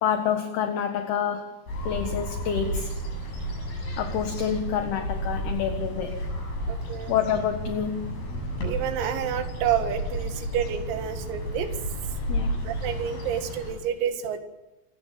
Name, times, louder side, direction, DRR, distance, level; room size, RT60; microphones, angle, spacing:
voice 1, 0.0-1.5 1.8-3.0 4.0-6.2 7.1-8.1 12.3-12.6, left 8 dB, 60° left, 6 dB, 3.2 m, -27 dB
sound 1, 1.7-13.7, equal, 45° left, 9.2 m, -32 dB
voice 2, 6.7-7.1 8.6-11.7 12.7-14.4, right 9 dB, 85° right, 7 dB, 4.6 m, -29 dB
30.0 x 17.0 x 7.7 m, 1.0 s
omnidirectional pair, 5.9 m